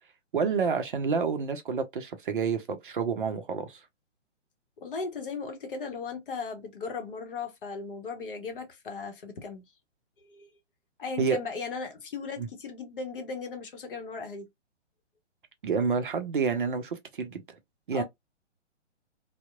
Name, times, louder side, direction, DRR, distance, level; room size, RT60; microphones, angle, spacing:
voice 1, 0.3-3.8 11.2-11.4 12.4-12.5 15.6-17.4 17.9-18.0, right 5 dB, 45° right, 0.5 m, -28 dB
voice 2, 4.8-9.6 10.3-10.5 11.0-14.5 17.9-18.0, left 4 dB, 45° left, 0.8 m, -37 dB
2.7 x 2.0 x 2.2 m
figure-of-eight pair, 130°, 36 cm